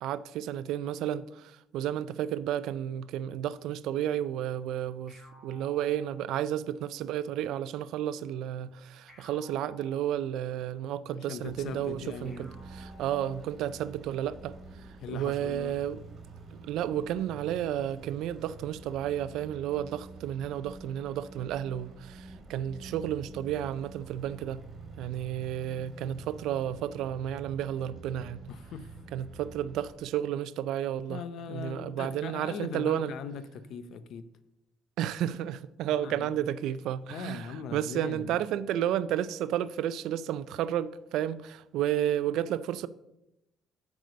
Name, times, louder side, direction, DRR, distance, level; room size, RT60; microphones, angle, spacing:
voice 1, 0.0-14.6 15.1-16.0 16.7-24.6 25.0-28.4 29.1-31.2 31.5-33.1 35.0-42.9, right 11 dB, 80° right, 0.3 m, -32 dB
sound 1, 5.1-6.7 9.1-10.7 12.2-13.8, left 2 dB, 15° left, 3.0 m, -57 dB
voice 2, 11.1-12.5 15.0-15.8 28.5-29.0 31.1-34.3 35.9-36.4 37.1-38.4, left 6 dB, 60° left, 0.6 m, -40 dB
sound 2, 11.4-30.0, right 3 dB, 35° right, 2.2 m, -48 dB
7.8 x 4.9 x 6.6 m
cardioid pair, 165°, 0 cm